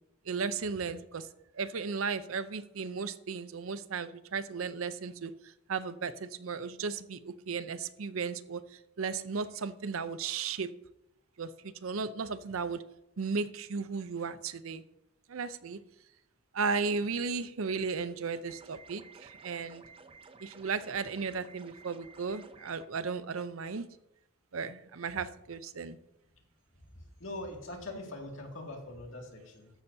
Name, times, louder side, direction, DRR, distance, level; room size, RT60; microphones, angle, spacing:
voice 1, 0.3-1.3 1.5-5.3 5.7-10.7 11.4-12.8 13.2-14.8 15.3-15.8 16.5-19.8 20.4-23.9 24.5-26.0, right 5 dB, 85° right, 13 dB, 0.6 m, -35 dB
sound 1, 18.5-22.9, right 4 dB, 25° right, 0.5 m, -54 dB
voice 2, 26.9-29.7, left 1 dB, 65° left, 1 dB, 2.3 m, -42 dB
13.5 x 9.9 x 2.8 m, 0.87 s
head